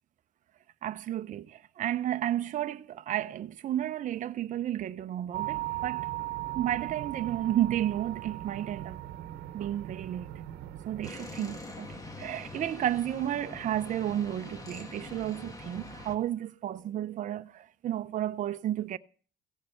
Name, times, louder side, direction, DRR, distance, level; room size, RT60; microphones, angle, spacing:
voice 1, 0.8-6.1 6.5-9.0 9.5-10.3 10.9-19.0, right 12 dB, 50° right, 0.6 m, -32 dB
sound 1, 5.3-11.1, right 15 dB, 75° right, 1.0 m, -38 dB
sound 2, 11.0-16.1, left 2 dB, 20° left, 1.9 m, -44 dB
16.5 x 6.6 x 7.8 m
cardioid pair, 110°, 17 cm